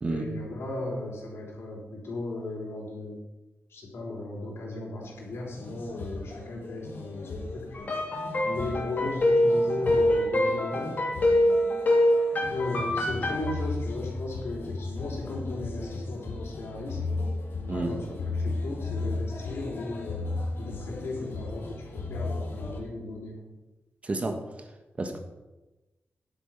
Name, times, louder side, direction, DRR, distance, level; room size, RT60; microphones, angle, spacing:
voice 1, 0.1-3.2 3.7-7.9 8.4-11.0 12.5-17.0 17.7-20.2 20.6-23.4, left 2 dB, 80° left, -2 dB, 3.8 m, -36 dB
sound 1, 5.0-22.8, left 3 dB, 65° left, 1.8 m, -36 dB
sound 2, 7.7-13.5, left 1 dB, 40° left, 2.6 m, -24 dB
voice 2, 24.0-24.4 25.0-25.2, right 2 dB, 30° right, 6 dB, 1.4 m, -30 dB
10.5 x 8.5 x 5.9 m, 1.1 s
wide cardioid pair, 150°, 4 cm